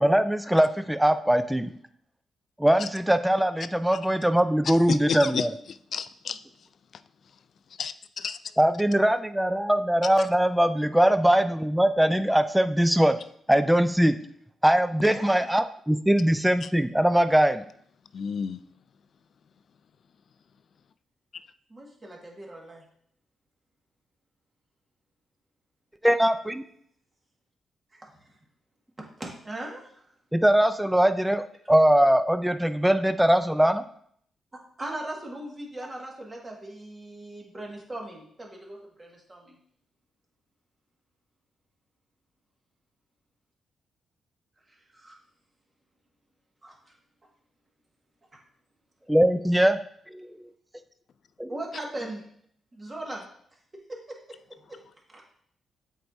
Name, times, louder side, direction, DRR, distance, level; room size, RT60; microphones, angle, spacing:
voice 1, 0.0-1.7 2.6-5.5 8.6-13.2 13.5-14.1 14.6-17.6 26.0-26.6 30.3-33.8 49.1-49.8 50.1-50.3 51.4-51.5, right 1 dB, 5° right, 10 dB, 0.4 m, -21 dB
voice 2, 4.6-6.4 7.8-8.4 15.1-15.2 16.6-16.7 18.1-18.6, left 7 dB, 65° left, 13 dB, 0.3 m, -32 dB
voice 3, 15.0-15.5 21.7-22.8 27.9-28.4 29.2-30.1 34.5-39.6 44.7-45.2 46.6-46.9 48.3-48.4 51.5-52.2 52.7-53.2 54.1-54.2, right 1 dB, 30° right, -1 dB, 1.7 m, -39 dB
7.8 x 4.6 x 2.7 m, 0.65 s
cardioid pair, 75°, 0 cm